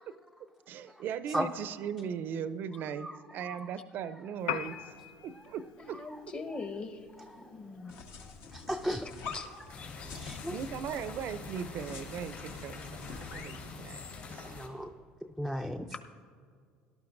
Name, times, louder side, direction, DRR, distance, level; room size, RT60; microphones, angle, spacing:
voice 1, 0.7-4.8 5.2-6.0 10.5-14.0 14.3-14.5 15.8-16.0, right 8 dB, 55° right, 13 dB, 0.5 m, -38 dB
Piano, 4.4-12.4, left 10 dB, 80° left, 0.4 m, -46 dB
voice 2, 5.8-7.9 9.0-9.9 15.9-16.0, left 3 dB, 35° left, 5 dB, 1.2 m, -42 dB
sound 1, 7.9-13.7, left 5 dB, 65° left, 1.3 m, -46 dB
voice 3, 8.5-9.1 10.1-10.5 14.5-14.9 15.4-16.0, equal, 5° left, 5 dB, 0.4 m, -34 dB
sound 2, 9.7-14.7, left 4 dB, 50° left, 3.6 m, -45 dB
18.0 x 12.0 x 2.6 m, 2.1 s
supercardioid pair, 85°, 4 cm